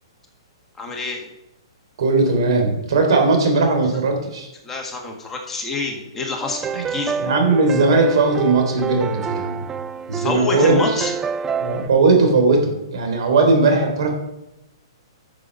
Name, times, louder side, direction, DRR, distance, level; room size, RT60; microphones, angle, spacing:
voice 1, 0.8-1.3 4.6-7.2 10.1-11.1, left 3 dB, 10° left, 1 dB, 1.7 m, -26 dB
voice 2, 2.0-4.5 6.7-6.8 7.2-9.7 10.1-11.0 11.6-14.1, right 3 dB, 65° right, 3 dB, 3.5 m, -18 dB
sound 1, 6.4-11.9, right 6 dB, 15° right, 0.3 m, -28 dB
11.5 x 6.8 x 5.5 m, 0.94 s
hypercardioid pair, 145°, 3 cm